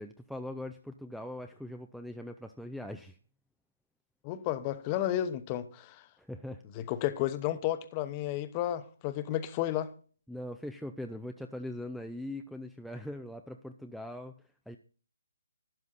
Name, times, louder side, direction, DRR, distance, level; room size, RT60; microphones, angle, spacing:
voice 1, 0.0-3.2 6.2-6.6 10.3-14.3 14.7-14.8, left 1 dB, ahead, 0.4 m, -41 dB
voice 2, 4.2-6.0 6.7-9.9, left 12 dB, 25° left, 1.0 m, -32 dB
12.5 x 9.8 x 4.1 m
hypercardioid pair, 155°, 0 cm